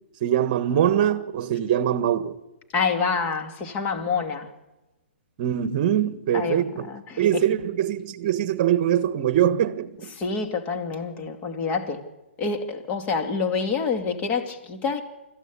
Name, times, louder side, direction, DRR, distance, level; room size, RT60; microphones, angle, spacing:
voice 1, 0.2-2.4 5.4-6.9 7.2-10.1, right 10 dB, 40° right, 1.4 m, -23 dB
voice 2, 2.7-4.5 6.3-7.4 10.1-12.0 12.4-15.0, left 5 dB, 25° left, 2.4 m, -27 dB
25.5 x 15.0 x 8.4 m
hypercardioid pair, 150°, 6 cm